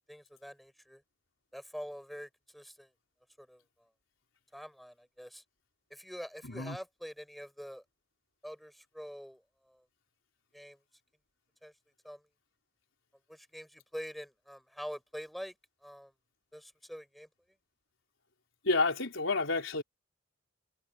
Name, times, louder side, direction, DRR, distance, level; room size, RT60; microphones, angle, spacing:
voice 1, 0.1-1.0 1.5-2.9 3.4-3.9 4.5-5.4 5.9-7.8 8.4-9.8 10.5-10.8 11.6-11.7 12.0-12.3 13.3-15.5 15.8-16.1 16.5-17.3, equal, ahead, 6.2 m, -45 dB
voice 2, 6.4-6.8 18.6-19.8, left 3 dB, 90° left, 4.2 m, -30 dB
head